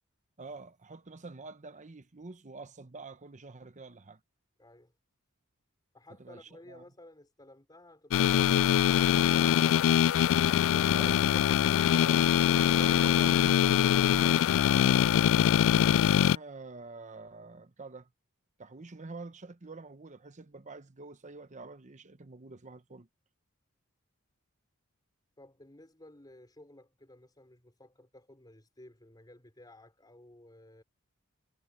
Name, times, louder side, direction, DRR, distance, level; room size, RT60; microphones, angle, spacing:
voice 1, 0.4-4.2 6.2-6.8 10.9-12.2 12.6-15.1 16.1-18.1 18.6-23.1, right 3 dB, 35° right, 0.9 m, -47 dB
voice 2, 4.6-4.9 5.9-10.0 25.4-30.8, left 1 dB, 20° left, 5.0 m, -55 dB
sound 1, 8.1-16.4, left 9 dB, 65° left, 0.3 m, -23 dB
head